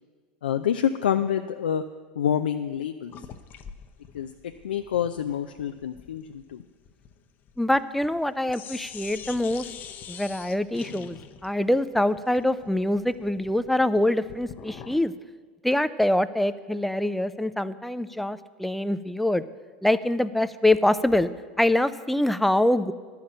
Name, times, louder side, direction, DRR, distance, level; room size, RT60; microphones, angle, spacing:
voice 1, 0.4-1.8 2.2-3.1 4.1-6.6, left 9 dB, 80° left, 7 dB, 0.4 m, -27 dB
sound 1, 3.1-8.2 8.5-15.1, left 8 dB, 40° left, 0.7 m, -45 dB
voice 2, 7.6-9.7 10.1-15.1 15.6-19.4 19.8-21.3 21.6-22.9, left 1 dB, 5° left, 13 dB, 0.4 m, -24 dB
11.0 x 5.8 x 8.8 m, 1.5 s
hypercardioid pair, 90°, 5 cm